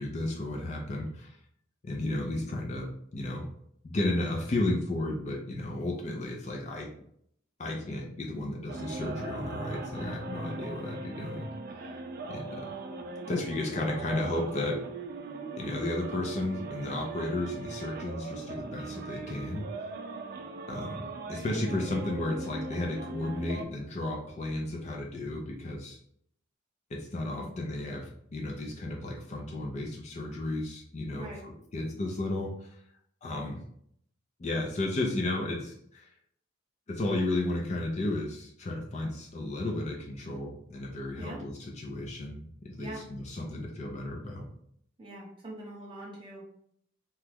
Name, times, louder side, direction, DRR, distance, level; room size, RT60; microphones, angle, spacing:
voice 1, 0.0-1.4 1.8-3.5 3.8-6.9 7.6-11.5 12.3-12.7 13.3-14.8 15.6-19.6 20.7-26.0 26.9-32.8 33.2-33.6 34.4-36.1 36.9-44.5, left 2 dB, 35° left, 0 dB, 0.4 m, -33 dB
sound 1, 8.7-23.7, right 3 dB, 45° right, 0.4 m, -40 dB
voice 2, 31.1-31.4 41.2-41.4 42.8-43.0 45.0-46.5, right 1 dB, 25° right, -4 dB, 1.0 m, -43 dB
2.9 x 2.2 x 3.4 m, 0.69 s
head